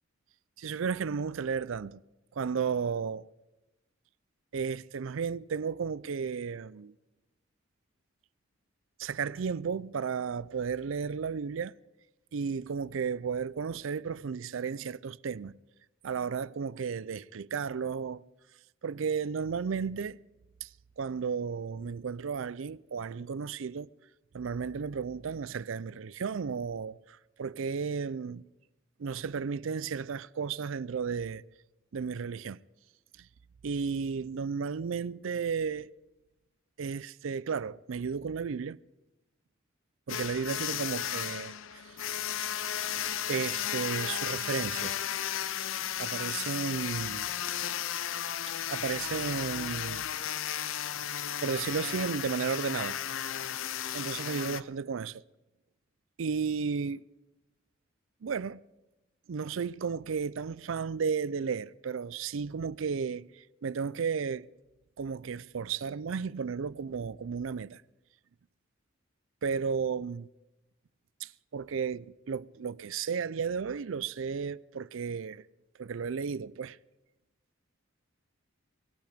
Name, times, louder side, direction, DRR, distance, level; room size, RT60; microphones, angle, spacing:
voice 1, 0.6-2.0 2.4-3.3 4.5-6.9 9.0-11.7 12.3-15.5 16.0-18.2 18.8-20.2 20.6-20.7 21.0-23.9 24.3-28.4 29.0-31.4 31.9-32.6 33.6-35.9 36.8-38.8 40.1-41.9 43.3-45.0 46.0-47.3 48.5-50.1 51.4-53.0 53.9-55.2 56.2-57.0 58.2-58.6 59.3-64.5 65.0-67.8 69.4-70.3 71.2-75.4 75.8-76.8, right 6 dB, 75° right, 0.4 m, -33 dB
sound 1, 40.1-54.6, left 10 dB, 75° left, 0.5 m, -34 dB
20.0 x 13.5 x 5.1 m
head